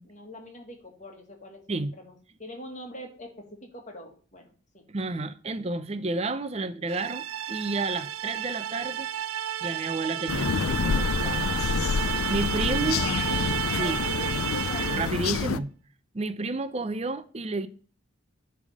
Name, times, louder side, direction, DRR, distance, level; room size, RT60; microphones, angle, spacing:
voice 1, 0.0-4.8 12.9-15.1, left 1 dB, 35° left, 1.7 m, -44 dB
voice 2, 4.9-9.1 9.6-11.5 12.3-13.1 13.8-14.0 14.9-15.7 16.1-17.7, right 3 dB, 30° right, 0.5 m, -31 dB
sound 1, 6.9-15.3, right 11 dB, 90° right, 0.4 m, -32 dB
sound 2, 10.3-15.6, left 6 dB, 90° left, 0.4 m, -28 dB
8.5 x 3.5 x 6.3 m
head